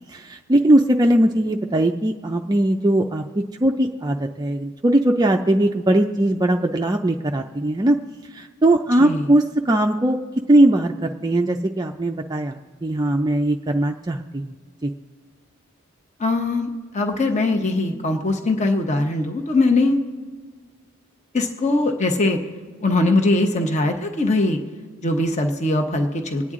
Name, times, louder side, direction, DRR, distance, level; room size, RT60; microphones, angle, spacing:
voice 1, 0.1-8.0 8.3-10.2 10.5-14.5 14.8-14.9, right 1 dB, 20° right, 3 dB, 0.4 m, -20 dB
voice 2, 16.2-20.0 21.3-22.4 22.8-24.6 25.0-26.5, left 2 dB, 35° left, 4 dB, 0.8 m, -21 dB
25.0 x 9.4 x 3.7 m, 1.5 s
head